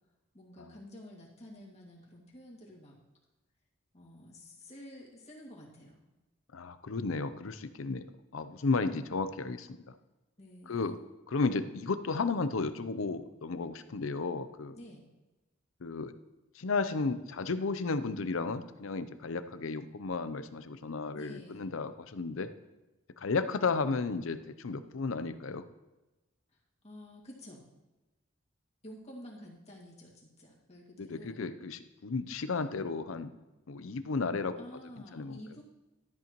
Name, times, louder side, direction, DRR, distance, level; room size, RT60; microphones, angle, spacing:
voice 1, 0.3-3.0 3.9-6.0 10.4-11.0 14.7-15.0 21.1-21.6 26.8-27.7 28.8-31.4 34.6-35.6, left 1 dB, 30° left, -3 dB, 2.2 m, -50 dB
voice 2, 6.5-8.0 8.3-9.9 10.7-11.0 11.3-14.8 15.8-16.1 16.5-22.5 23.2-25.6 31.0-33.3 33.7-34.5 35.1-35.4, left 4 dB, 75° left, 11 dB, 0.6 m, -33 dB
13.0 x 8.5 x 3.0 m, 1.1 s
head